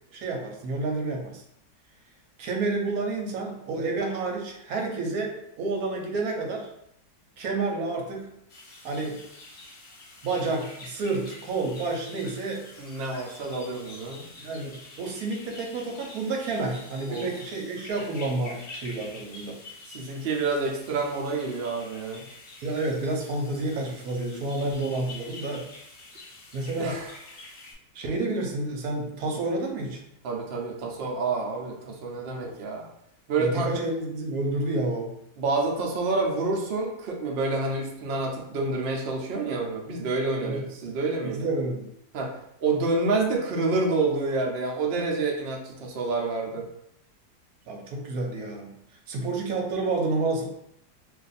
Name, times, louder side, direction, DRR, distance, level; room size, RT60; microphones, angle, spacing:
voice 1, 0.0-1.4 2.4-6.7 7.4-8.3 8.8-9.2 10.2-12.6 14.4-19.6 20.0-20.1 22.6-25.7 26.5-27.0 27.9-30.0 32.4-32.5 33.4-35.1 40.4-40.6 41.2-41.9 47.7-48.8 49.1-50.5, right 2 dB, 70° right, 1 dB, 1.0 m, -29 dB
sound 1, 8.5-27.7, left 2 dB, 55° left, 1.0 m, -47 dB
voice 2, 12.8-14.2 17.1-17.3 19.9-22.3 26.8-27.1 30.2-32.9 33.3-33.7 35.4-41.5 42.1-46.7, right 3 dB, 85° right, 0 dB, 0.5 m, -28 dB
2.6 x 2.5 x 4.0 m, 0.75 s
omnidirectional pair, 1.9 m